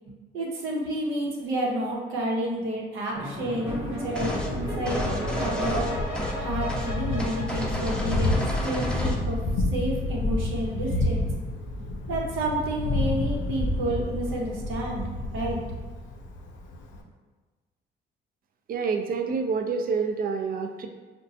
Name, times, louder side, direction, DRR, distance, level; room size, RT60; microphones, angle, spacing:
voice 1, 0.1-5.0 5.4-5.9 6.4-9.4 9.7-11.2 11.8-15.1 15.3-15.6, right 1 dB, 90° right, -2 dB, 0.8 m, -30 dB
sound 1, 3.1-8.6, equal, 30° right, 0.9 m, -35 dB
Thunder, 3.7-17.0, left 1 dB, 70° left, 0.5 m, -30 dB
sound 2, 4.2-4.5 4.9-6.4 6.7-6.9 7.2-9.2, equal, 5° left, 0.5 m, -30 dB
voice 2, 18.7-20.9, right 5 dB, 45° right, 5 dB, 0.4 m, -27 dB
3.9 x 2.2 x 2.7 m, 1.4 s
cardioid pair, 90°, 20 cm